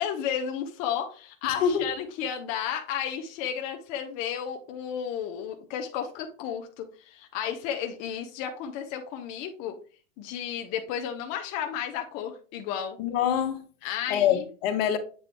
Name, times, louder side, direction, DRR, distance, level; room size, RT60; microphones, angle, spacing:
voice 1, 0.0-9.8 10.2-13.0 13.8-14.5, left 9 dB, 25° left, 0.4 m, -33 dB
voice 2, 1.4-1.9 13.0-13.6 14.1-15.0, left 9 dB, 50° left, 1.1 m, -25 dB
7.5 x 3.8 x 3.3 m
hypercardioid pair, 135°, 39 cm